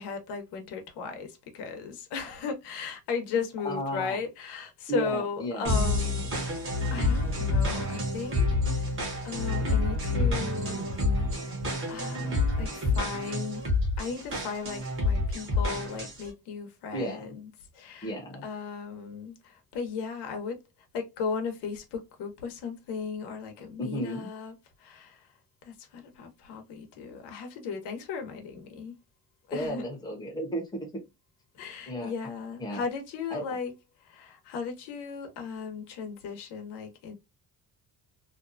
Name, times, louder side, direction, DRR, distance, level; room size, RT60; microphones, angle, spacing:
voice 1, 0.0-6.3 6.9-8.9 9.2-11.5 11.9-13.6 14.0-18.1 18.4-20.6 20.9-25.3 25.6-28.9 29.5-29.8 31.5-33.7 34.0-37.2, left 5 dB, 85° left, 0.9 m, -36 dB
voice 2, 3.6-4.2 4.9-5.7 16.9-17.3 18.0-18.4 23.8-24.3 29.5-30.9 31.9-32.1 32.6-32.8 33.3-33.4, equal, 10° left, 0.8 m, -33 dB
sound 1, 5.6-16.3, left 2 dB, 30° right, 1.0 m, -28 dB
2.7 x 2.3 x 2.4 m
cardioid pair, 165°, 39 cm